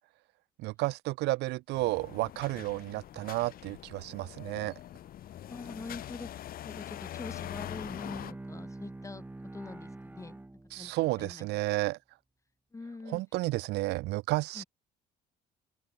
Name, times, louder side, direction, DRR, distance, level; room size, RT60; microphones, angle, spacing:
voice 1, 0.6-4.7 10.7-12.0 13.1-14.6, right 20 dB, 80° right, 0.6 m, -32 dB
sound 1, 1.7-8.3, left 12 dB, 60° left, 2.0 m, -43 dB
voice 2, 5.3-9.2 9.5-11.7 12.7-13.2 14.5-14.7, left 3 dB, 20° left, 3.3 m, -45 dB
Bowed string instrument, 7.2-11.3, right 2 dB, 10° right, 1.5 m, -46 dB
open air
cardioid pair, 110°, 17 cm